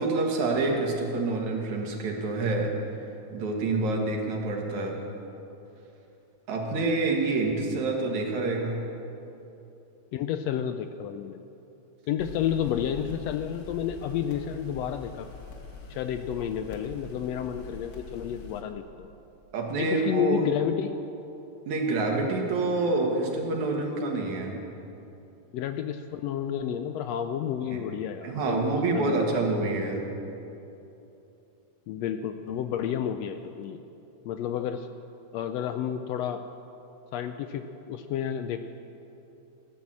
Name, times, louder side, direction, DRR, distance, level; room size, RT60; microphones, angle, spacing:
voice 1, 0.0-2.7 3.3-5.0 6.5-8.9 19.5-20.5 21.7-24.6 27.7-27.8 28.2-30.1, right 3 dB, 75° right, 1 dB, 3.1 m, -27 dB
voice 2, 10.1-11.4 12.1-15.3 15.9-19.1 19.8-21.0 25.5-29.4 31.9-33.8 34.2-34.9 35.3-36.4 37.1-38.6, left 9 dB, 80° left, 8 dB, 1.6 m, -31 dB
sound 1, 12.2-18.6, left 4 dB, 50° left, 1.2 m, -44 dB
16.5 x 10.5 x 7.5 m, 2.9 s
omnidirectional pair, 3.3 m